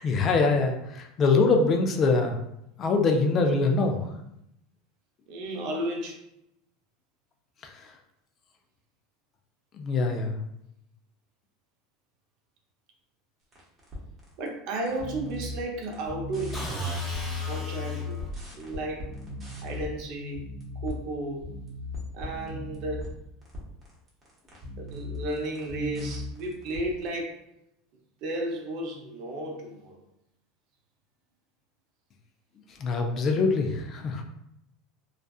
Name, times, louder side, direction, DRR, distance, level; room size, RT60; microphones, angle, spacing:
voice 1, 0.0-2.4 2.8-4.0 9.7-10.3 32.8-34.2, left 3 dB, 40° left, 3 dB, 0.4 m, -23 dB
voice 2, 5.3-6.2 14.4-17.0 17.5-18.2 18.6-19.2 19.6-20.4 20.8-21.5 22.1-23.1 24.8-27.4 28.2-29.9 33.2-33.3, right 1 dB, 60° right, 1 dB, 0.6 m, -33 dB
sound 1, 13.5-14.5 14.7-17.5 17.8-19.9 20.3-21.0 21.4-27.1, left 1 dB, 30° right, 0.8 m, -38 dB
sound 2, 16.5-18.5, left 3 dB, 20° left, 1.0 m, -33 dB
2.4 x 2.4 x 2.3 m, 0.79 s
supercardioid pair, 115°, 0 cm